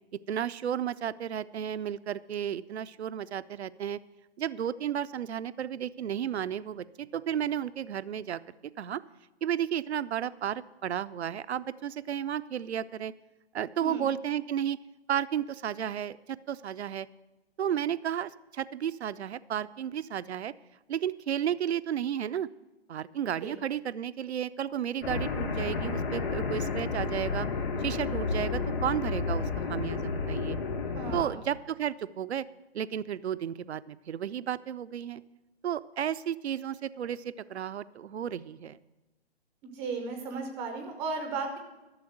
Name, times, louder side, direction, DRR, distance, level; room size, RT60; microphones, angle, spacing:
voice 1, 0.3-4.0 4.4-8.4 8.8-9.0 9.4-13.1 13.5-14.8 15.1-16.2 16.5-17.1 17.6-20.5 20.9-22.5 22.9-27.5 27.8-30.6 31.1-32.4 32.7-35.2 35.6-38.8, right 9 dB, 80° right, 14 dB, 0.5 m, -33 dB
sound 1, 25.0-31.2, left 4 dB, 60° left, 3.0 m, -31 dB
voice 2, 30.9-31.4 39.7-41.6, right 4 dB, 5° right, 5 dB, 0.4 m, -35 dB
12.5 x 6.9 x 7.7 m, 1.1 s
hypercardioid pair, 140°, 33 cm